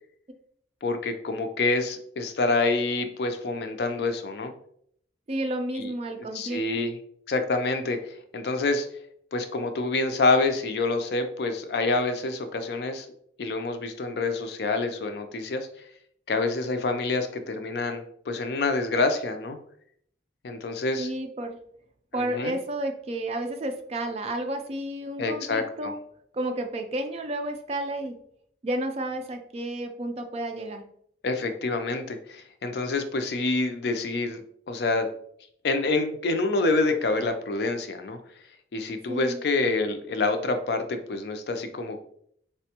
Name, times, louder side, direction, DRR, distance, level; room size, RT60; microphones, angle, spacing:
voice 1, 0.8-4.5 5.8-5.9 6.3-6.9 7.3-8.9 9.3-13.1 13.4-15.7 16.3-19.6 20.4-21.1 22.1-22.5 25.2-25.9 31.2-34.4 34.7-35.1 35.6-38.2 38.7-42.0, left 3 dB, 65° left, 7 dB, 0.4 m, -27 dB
voice 2, 5.3-6.8 21.0-21.6 22.1-26.0 26.3-28.2 28.6-30.8 39.1-39.4, right 1 dB, 35° right, 5 dB, 0.4 m, -31 dB
4.1 x 2.2 x 2.8 m, 0.66 s
head